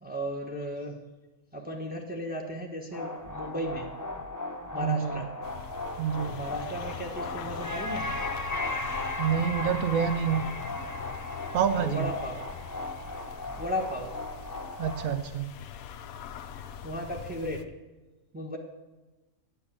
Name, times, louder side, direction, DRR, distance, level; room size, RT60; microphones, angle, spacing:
voice 1, 0.0-1.0 1.5-3.9 4.7-5.3 6.3-8.1 11.7-12.4 13.6-14.1 16.5-17.6 18.3-18.6, equal, 5° right, 0 dB, 1.0 m, -35 dB
sound 1, 2.9-15.2, left 2 dB, 15° left, 0.8 m, -36 dB
voice 2, 4.8-5.2 6.0-6.4 9.2-10.5 11.5-12.1 14.8-15.5, right 8 dB, 80° right, 9 dB, 1.0 m, -27 dB
sound 2, 5.4-17.6, left 8 dB, 90° left, 1.1 m, -43 dB
8.6 x 6.7 x 8.5 m, 1.1 s
omnidirectional pair, 1.4 m